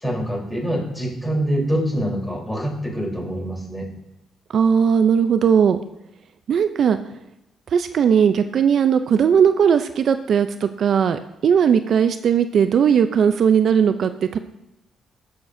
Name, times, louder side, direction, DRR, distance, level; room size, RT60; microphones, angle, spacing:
voice 1, 0.0-3.9, equal, 10° left, -3 dB, 3.6 m, -25 dB
voice 2, 4.5-5.8 6.5-7.0 7.7-14.4, right 7 dB, 60° right, 10 dB, 0.4 m, -18 dB
14.5 x 6.5 x 2.6 m, 0.88 s
cardioid pair, 90°, 0 cm